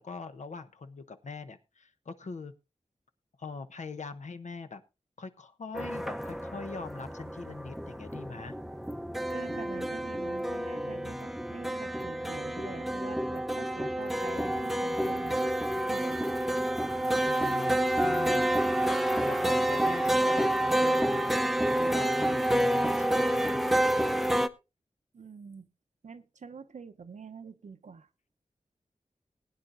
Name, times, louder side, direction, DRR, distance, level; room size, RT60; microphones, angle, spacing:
voice 1, 0.0-2.5 3.4-4.8 5.2-8.5 10.8-11.2 17.2-18.6 19.2-21.4 21.8-24.4, left 4 dB, 80° left, 9 dB, 0.9 m, -42 dB
sound 1, 5.7-24.5, right 1 dB, ahead, 0.6 m, -29 dB
voice 2, 9.3-16.2 25.1-25.7 26.0-28.1, right 5 dB, 85° right, 10 dB, 0.7 m, -46 dB
20.0 x 9.5 x 2.5 m, 0.27 s
wide cardioid pair, 80°, 12 cm